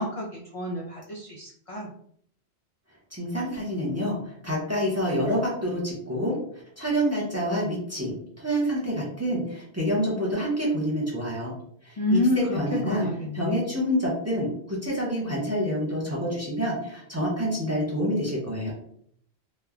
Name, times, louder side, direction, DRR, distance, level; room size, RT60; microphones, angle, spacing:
voice 1, 0.0-1.9 12.0-13.4, left 1 dB, 55° left, -3 dB, 0.4 m, -28 dB
voice 2, 3.1-11.5 11.8-13.1 13.3-18.7, equal, 20° right, -5 dB, 0.5 m, -27 dB
3.0 x 2.1 x 2.3 m, 0.66 s
omnidirectional pair, 1.1 m